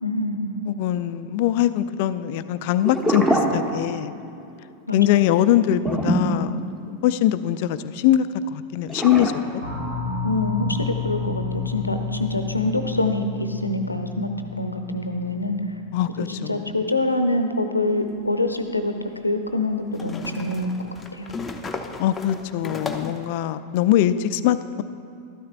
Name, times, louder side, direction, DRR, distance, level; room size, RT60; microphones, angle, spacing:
voice 1, 0.0-0.6 4.9-5.3 10.2-14.3 14.6-15.6 16.4-18.9 19.2-21.3, left 2 dB, 85° left, 7 dB, 0.7 m, -25 dB
voice 2, 0.7-4.1 4.9-6.6 7.0-9.6 15.9-16.6 22.0-24.8, left 12 dB, 50° left, 13 dB, 0.3 m, -22 dB
sound 1, 2.8-4.2 4.5-4.7 5.8-7.1 8.9-9.3, right 1 dB, 15° right, 1.3 m, -23 dB
sound 2, 9.6-15.9, left 5 dB, 75° right, 1.9 m, -31 dB
sound 3, 18.0-18.1 19.9-23.3, left 3 dB, 15° left, 0.7 m, -34 dB
12.5 x 12.5 x 2.5 m, 2.6 s
figure-of-eight pair, 90°, 0 cm